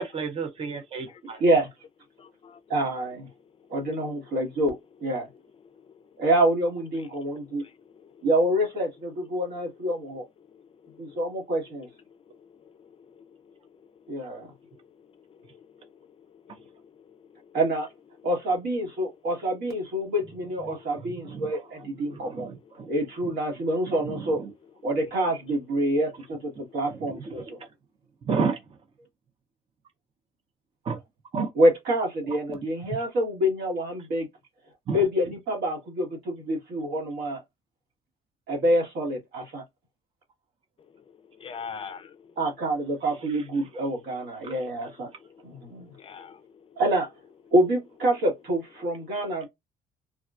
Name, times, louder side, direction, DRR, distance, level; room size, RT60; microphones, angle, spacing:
voice 1, 0.0-1.4 21.2-21.5 22.1-22.9 24.1-24.5 27.0-27.5 28.3-28.6 30.9-31.0 31.3-31.5 34.9-35.0 44.4-44.5, right 5 dB, 35° right, 0.7 m, -31 dB
voice 2, 0.9-1.4 2.2-2.6 5.8-5.9 7.2-8.3 10.5-11.2 12.3-13.2 14.2-14.3 14.7-14.8 15.3-15.9 16.3-17.6 27.6-27.7 41.4-42.3 45.2-45.5 45.8-46.8, left 6 dB, 35° left, 0.4 m, -46 dB
voice 3, 2.7-3.3 3.7-5.3 6.2-7.6 8.2-10.2 11.0-11.9 14.1-14.5 17.5-17.9 18.2-22.5 22.9-24.4 24.8-27.6 31.5-34.3 34.9-37.4 38.5-39.6 42.4-45.1 45.4-45.9 46.8-47.1 47.5-49.5, right 1 dB, 70° right, 1.5 m, -26 dB
3.4 x 2.2 x 2.4 m
cardioid pair, 110°, 17 cm